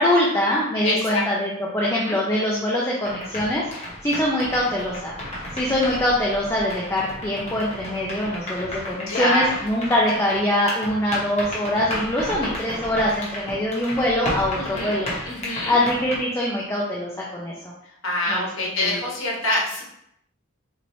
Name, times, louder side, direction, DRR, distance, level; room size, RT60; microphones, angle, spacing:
voice 1, 0.0-5.2 5.5-15.1 15.4-17.7 18.3-18.4 18.8-19.0, left 1 dB, 15° left, -4 dB, 0.6 m, -23 dB
voice 2, 0.8-1.2 2.0-2.2 9.1-9.6 14.5-14.9 15.3-15.8 18.0-19.8, left 1 dB, 75° left, -4 dB, 1.3 m, -25 dB
sound 1, 3.0-16.2, left 1 dB, 35° left, 1.0 m, -33 dB
4.5 x 3.0 x 2.7 m, 0.74 s
head